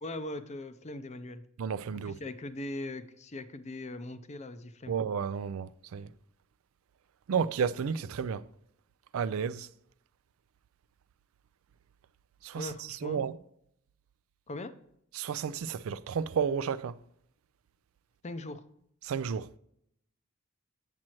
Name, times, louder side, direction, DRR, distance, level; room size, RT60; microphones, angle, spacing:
voice 1, 0.0-1.4 2.1-5.0 12.6-13.2 14.5-14.7 18.2-18.6, left 2 dB, 30° left, 0.5 m, -40 dB
voice 2, 1.6-2.1 4.9-6.1 7.3-8.5 9.1-9.7 12.4-13.4 15.1-17.0 19.0-19.5, right 6 dB, 70° right, 0.4 m, -32 dB
7.7 x 7.4 x 3.0 m
head